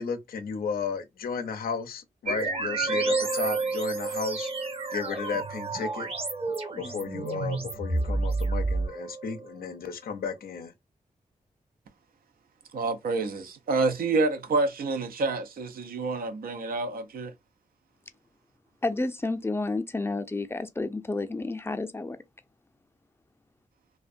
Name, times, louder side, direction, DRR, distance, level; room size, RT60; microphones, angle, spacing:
voice 1, 0.0-4.5 4.9-6.1 6.7-10.7, left 6 dB, 90° left, 0.4 m, -34 dB
sound 1, 2.3-9.4, right 3 dB, 40° right, 0.7 m, -30 dB
voice 2, 12.7-17.3, right 3 dB, 80° right, 0.4 m, -28 dB
voice 3, 18.8-22.2, left 2 dB, 15° left, 0.4 m, -30 dB
2.5 x 2.1 x 2.4 m
cardioid pair, 50°, 15 cm